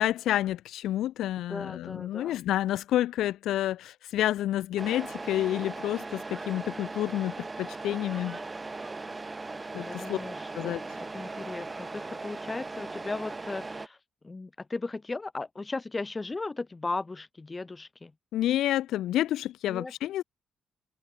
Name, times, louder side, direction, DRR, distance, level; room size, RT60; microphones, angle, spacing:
voice 1, 0.0-8.4 9.7-10.2 10.5-10.8 18.3-20.2, left 13 dB, 80° left, 1.0 m, -29 dB
voice 2, 1.4-2.4 9.8-14.0 14.2-18.1 19.7-19.9, left 3 dB, 25° left, 4.9 m, -37 dB
Truck, 4.8-13.9, right 3 dB, 20° right, 4.1 m, -39 dB
cardioid pair, 90°, 0 cm